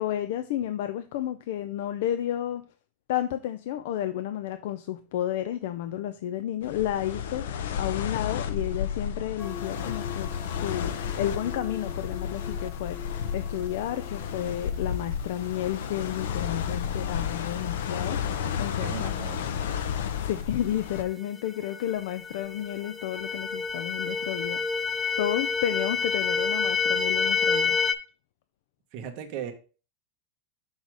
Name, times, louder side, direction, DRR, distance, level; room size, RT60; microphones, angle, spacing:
voice 1, 0.0-2.6 3.1-19.1 20.2-24.6 25.2-27.8, left 11 dB, 65° left, 0.4 m, -32 dB
sound 1, 6.6-21.0, left 8 dB, 85° left, 0.8 m, -32 dB
sound 2, 9.4-14.7 20.9-21.0 21.5-27.9, left 5 dB, 10° left, 0.4 m, -30 dB
voice 2, 18.8-19.7 28.9-29.5, right 8 dB, 45° right, 1.2 m, -37 dB
6.2 x 4.1 x 4.7 m
supercardioid pair, 160°, 0 cm